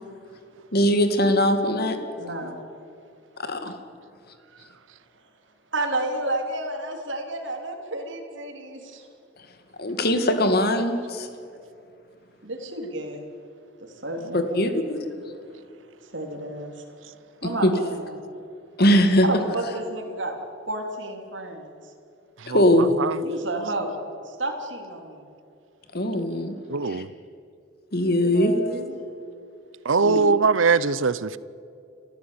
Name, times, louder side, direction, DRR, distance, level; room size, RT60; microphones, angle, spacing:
voice 1, 0.7-2.0 2.4-2.5 3.4-3.7 9.8-11.3 14.3-15.0 17.6-17.7 18.8-19.3 22.5-23.0 25.9-26.5 26.9-27.0 27.9-28.6 30.0-30.2, left 1 dB, 55° left, 2.1 m, -21 dB
voice 2, 2.2-2.6 5.7-9.1 12.4-13.2 14.0-14.7 16.1-16.8 17.4-18.2 19.2-20.4 20.7-21.7 23.2-25.3 28.1-29.0, right 1 dB, 70° right, 3.3 m, -31 dB
voice 3, 22.4-23.2 26.7-27.1 29.8-31.4, right 4 dB, 85° right, 0.7 m, -22 dB
30.0 x 14.0 x 8.7 m
head